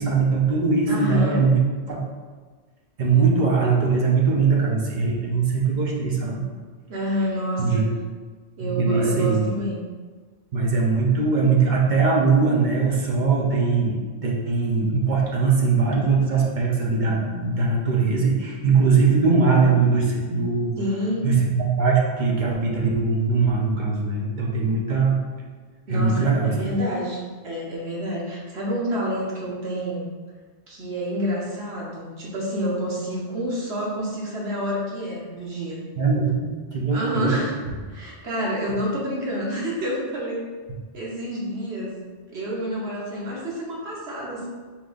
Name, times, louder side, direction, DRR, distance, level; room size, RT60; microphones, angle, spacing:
voice 1, 0.0-1.6 1.9-2.0 3.0-6.4 7.6-7.9 8.6-9.4 10.5-20.7 21.2-25.2 25.9-26.5 36.0-37.4, right 4 dB, 50° right, -2 dB, 0.8 m, -21 dB
voice 2, 0.9-1.5 6.9-7.9 8.6-9.8 20.8-21.4 25.9-30.1 30.7-35.8 36.9-37.6 37.9-40.5 40.9-42.0 42.3-44.5, equal, 70° right, -4 dB, 1.2 m, -28 dB
4.5 x 3.7 x 2.5 m, 1.4 s
omnidirectional pair, 1.2 m